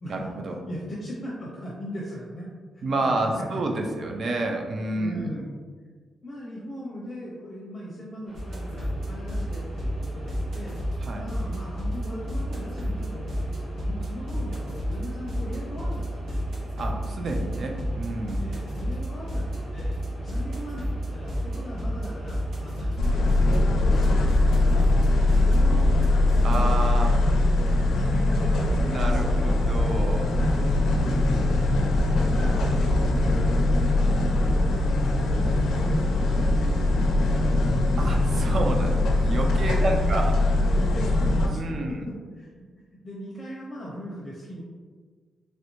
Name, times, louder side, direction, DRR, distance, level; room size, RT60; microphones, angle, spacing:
voice 1, 0.1-0.6 2.8-5.3 11.0-11.3 16.8-18.4 26.4-27.1 28.8-30.3 32.2-32.3 38.0-40.3 41.5-41.9, right 2 dB, 45° right, 2 dB, 0.4 m, -29 dB
voice 2, 0.7-2.5 2.7-3.6 4.9-5.5 6.2-10.8 11.1-16.4 18.4-26.2 26.5-26.7 27.9-29.4 32.0-37.5 38.7-39.3 39.7-42.7 43.0-44.6, equal, 25° left, -5 dB, 0.6 m, -38 dB
sound 1, 8.3-27.5, equal, 20° right, 1.1 m, -47 dB
sound 2, 8.3-26.7, equal, 85° right, 1.0 m, -31 dB
sound 3, 23.0-41.5, left 2 dB, 80° left, 0.4 m, -22 dB
3.1 x 2.6 x 3.0 m, 1.5 s
wide cardioid pair, 145°, 0 cm